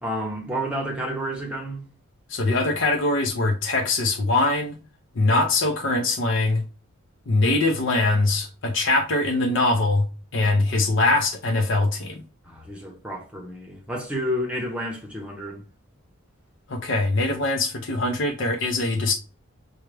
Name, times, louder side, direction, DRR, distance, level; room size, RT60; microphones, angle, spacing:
voice 1, 0.0-1.8 12.5-15.6, equal, 5° right, 0.8 m, -30 dB
voice 2, 2.3-4.8 5.2-6.6 7.3-10.1 10.3-12.2 16.7-19.1, left 2 dB, 55° left, 0.6 m, -22 dB
6.3 x 2.2 x 3.1 m
head